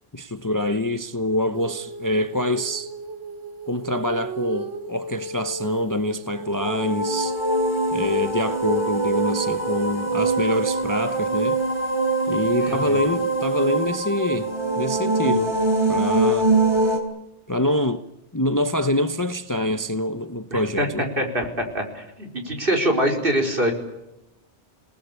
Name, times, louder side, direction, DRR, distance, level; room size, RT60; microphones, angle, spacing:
voice 1, 0.1-2.9 3.7-7.4 7.9-11.6 12.3-14.5 14.8-15.5 15.9-16.5 17.5-18.0 18.3-21.1, left 1 dB, 20° left, 0.9 m, -25 dB
Female singing, 1.5-7.3, right 3 dB, 85° right, 3.1 m, -36 dB
sound 1, 6.4-17.0, right 2 dB, 20° right, 4.2 m, -23 dB
voice 2, 12.6-13.0 20.5-20.9 21.2-23.7, right 1 dB, 50° right, 4.9 m, -24 dB
28.5 x 19.5 x 8.3 m
omnidirectional pair, 1.2 m